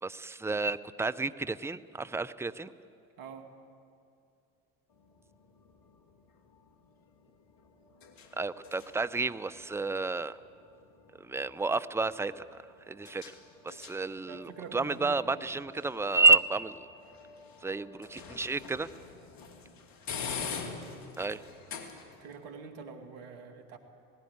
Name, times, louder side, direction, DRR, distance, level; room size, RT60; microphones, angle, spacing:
voice 1, 0.0-2.7 8.4-10.4 11.2-12.4 12.9-13.2 13.6-16.7 17.6-18.9 21.2-21.4, right 3 dB, 5° right, 14 dB, 0.5 m, -30 dB
voice 2, 3.2-3.6 14.3-15.4 22.2-23.8, right 5 dB, 75° right, 6 dB, 2.2 m, -45 dB
sound 1, 4.9-22.4, left 5 dB, 55° left, 2.6 m, -46 dB
18.5 x 16.5 x 9.5 m, 2.5 s
hypercardioid pair, 70°, 41 cm